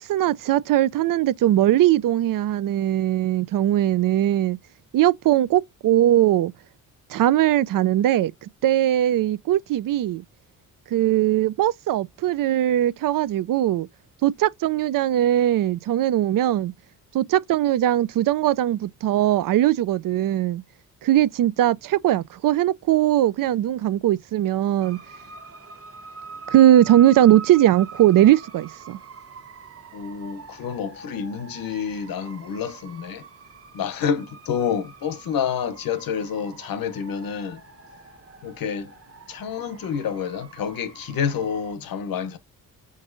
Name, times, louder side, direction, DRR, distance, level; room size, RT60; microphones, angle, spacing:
voice 1, 0.0-4.6 4.9-6.5 7.1-8.3 8.6-10.2 10.9-13.9 14.2-16.7 17.1-20.6 21.0-25.0 26.5-29.0, right 12 dB, 65° right, 0.5 m, -20 dB
sound 1, 24.8-41.8, right 5 dB, 40° right, 1.1 m, -44 dB
voice 2, 29.9-33.2 33.7-37.6 38.4-38.9 39.3-42.4, left 7 dB, 75° left, 1.0 m, -28 dB
5.3 x 3.8 x 2.6 m
cardioid pair, 70°, 35 cm